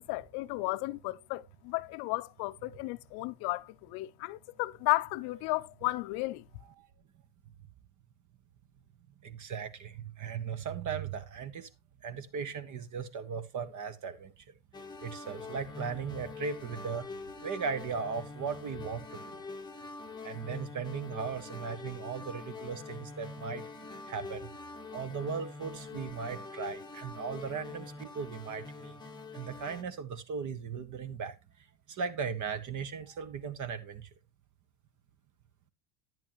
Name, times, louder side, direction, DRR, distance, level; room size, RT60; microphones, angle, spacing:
voice 1, 0.0-6.4, left 22 dB, 60° left, 0.7 m, -34 dB
voice 2, 9.2-11.7 12.0-14.3 15.0-17.1 17.4-19.4 20.2-29.0 29.3-31.3 31.9-34.1, right 6 dB, 45° right, 1.6 m, -37 dB
sound 1, 14.7-29.8, left 3 dB, 10° left, 1.0 m, -44 dB
10.5 x 9.3 x 3.1 m
supercardioid pair, 100°, 43 cm